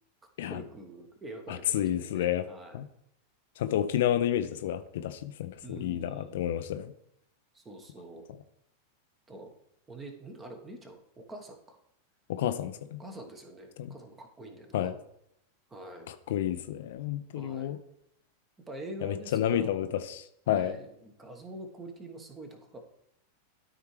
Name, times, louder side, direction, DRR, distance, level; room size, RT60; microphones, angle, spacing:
voice 1, 0.5-2.8 5.6-6.5 7.5-8.2 9.3-9.5 9.9-11.8 13.0-15.0 15.7-16.1 17.3-17.7 18.7-19.9 20.5-22.8, right 1 dB, 15° right, 5 dB, 1.2 m, -45 dB
voice 2, 1.5-2.5 2.7-2.9 3.6-6.9 12.3-13.0 13.8-13.9 14.7-14.9 16.1-17.8 19.0-20.8, left 11 dB, 55° left, 10 dB, 0.5 m, -30 dB
12.5 x 4.5 x 3.3 m, 0.76 s
figure-of-eight pair, 90°, 0 cm